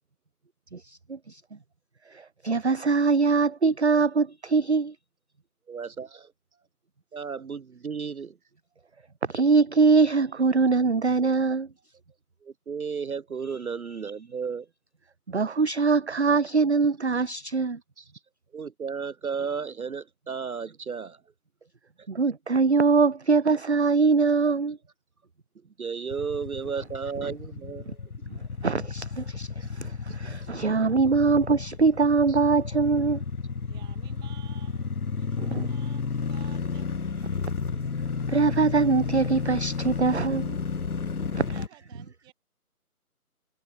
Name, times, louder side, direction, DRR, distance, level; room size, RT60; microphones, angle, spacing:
voice 1, 0.7-1.4 2.1-4.9 9.3-11.7 15.3-17.8 22.1-24.8 28.6-33.2 35.4-35.7 38.3-40.6 41.3-41.4, right 4 dB, 50° right, 0.5 m, -23 dB
voice 2, 5.7-6.3 7.1-8.4 12.4-14.7 18.0-18.1 18.5-21.2 22.0-22.1 25.8-28.3 32.3-32.4, right 6 dB, 65° right, 0.9 m, -34 dB
sound 1, 26.1-41.7, left 5 dB, 70° left, 1.2 m, -32 dB
voice 3, 33.6-37.0 41.5-42.3, right 19 dB, 10° right, 7.0 m, -54 dB
figure-of-eight pair, 160°, 46 cm